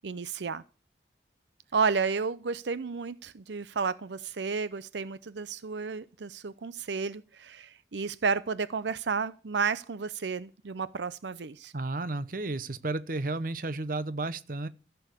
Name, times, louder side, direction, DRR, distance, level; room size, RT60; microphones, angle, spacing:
voice 1, 0.0-0.6 1.7-11.7, right 5 dB, 80° right, 0.6 m, -32 dB
voice 2, 11.7-14.7, right 2 dB, 50° right, 0.9 m, -32 dB
14.5 x 7.0 x 8.3 m
head